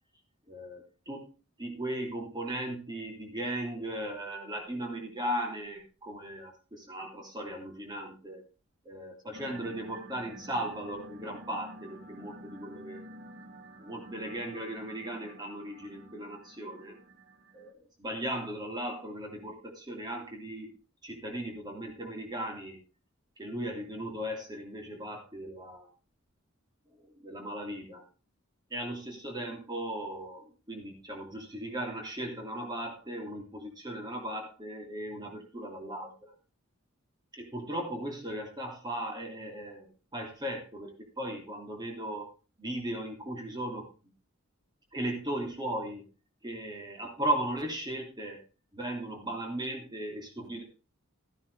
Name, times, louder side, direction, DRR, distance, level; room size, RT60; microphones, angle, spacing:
voice 1, 0.5-1.3 1.6-8.4 8.8-13.1 13.8-17.0 17.5-20.8 21.0-22.8 23.4-25.9 27.1-28.0 28.7-36.3 37.3-42.3 42.6-44.1 44.9-46.0 46.4-48.4 48.7-50.6, right 1 dB, 20° right, 1 dB, 2.8 m, -37 dB
sound 1, 9.3-17.7, right 1 dB, 50° right, 1.1 m, -49 dB
14.5 x 9.7 x 3.3 m, 0.33 s
head